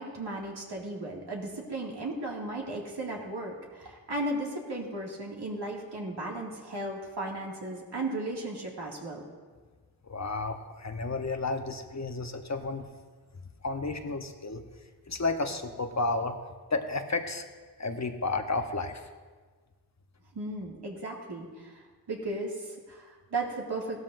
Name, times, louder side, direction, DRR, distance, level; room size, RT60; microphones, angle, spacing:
voice 1, 0.0-9.2 20.3-21.7 22.1-24.0, right 2 dB, 65° right, -1 dB, 2.3 m, -35 dB
voice 2, 10.0-12.9 13.4-14.7 15.1-16.4 16.7-17.4 17.8-19.1, left 3 dB, 40° left, 6 dB, 0.9 m, -32 dB
16.0 x 12.5 x 2.6 m, 1.4 s
cardioid pair, 55°, 43 cm